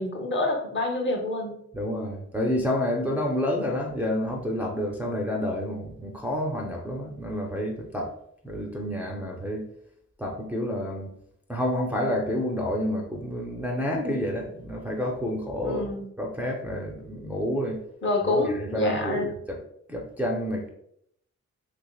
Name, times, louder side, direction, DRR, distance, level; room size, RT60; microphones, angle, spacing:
voice 1, 0.0-1.6 15.6-16.1 18.0-19.3, left 2 dB, 40° left, 1 dB, 0.6 m, -27 dB
voice 2, 1.7-8.1 8.4-9.7 10.2-11.1 11.5-15.9 16.2-17.8 18.3-19.6 19.9-20.7, left 1 dB, 5° right, -1 dB, 0.4 m, -29 dB
3.2 x 3.2 x 2.2 m, 0.71 s
wide cardioid pair, 155°, 30 cm